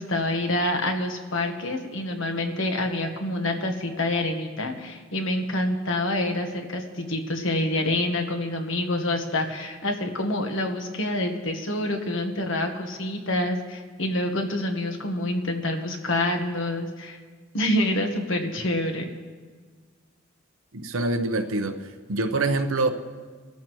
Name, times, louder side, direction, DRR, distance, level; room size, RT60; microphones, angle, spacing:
voice 1, 0.0-17.2 17.5-19.1, left 1 dB, 70° left, 4 dB, 1.3 m, -27 dB
voice 2, 20.7-21.8 22.1-22.9, right 2 dB, 80° right, 7 dB, 0.9 m, -25 dB
22.0 x 13.0 x 3.1 m, 1.5 s
head